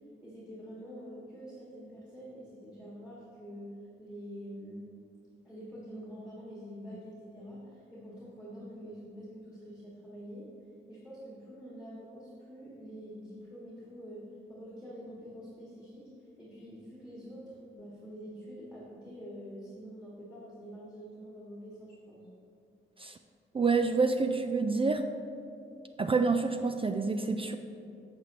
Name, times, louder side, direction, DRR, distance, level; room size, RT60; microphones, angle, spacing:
voice 1, 0.2-3.6 4.0-4.9 5.4-10.5 10.9-16.1 16.4-22.2, equal, 5° right, -7 dB, 1.7 m, -46 dB
voice 2, 23.5-25.1 26.0-27.6, right 4 dB, 25° right, 7 dB, 0.3 m, -27 dB
7.6 x 6.7 x 2.9 m, 2.6 s
cardioid pair, 75°, 21 cm